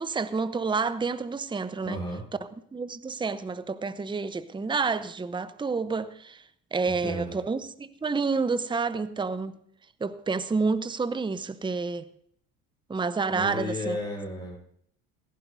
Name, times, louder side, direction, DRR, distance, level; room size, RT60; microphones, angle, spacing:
voice 1, 0.0-2.0 2.7-6.4 6.7-9.5 10.0-12.0 12.9-14.0, right 4 dB, 10° right, 0.7 m, -29 dB
voice 2, 1.8-2.2 7.0-7.4 13.3-14.6, left 1 dB, 10° left, 7.1 m, -33 dB
17.5 x 14.5 x 2.7 m
hypercardioid pair, 65°, 43 cm